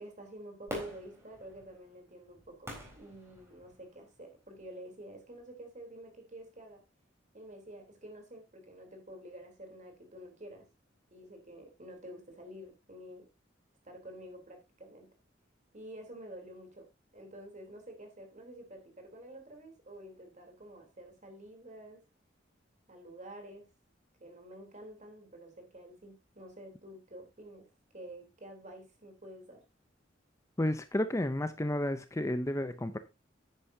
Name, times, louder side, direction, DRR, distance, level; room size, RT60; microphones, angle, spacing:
voice 1, 0.0-6.8 7.3-10.7 11.1-13.2 13.8-15.1 15.7-16.9 17.1-22.0 22.9-23.6 24.2-27.7 27.9-29.6, right 1 dB, 40° right, 3.4 m, -49 dB
Fireworks, 0.7-4.0 4.6-4.7, equal, 15° right, 4.0 m, -45 dB
voice 2, 30.6-33.0, left 1 dB, 15° left, 0.6 m, -31 dB
10.5 x 10.0 x 2.7 m
head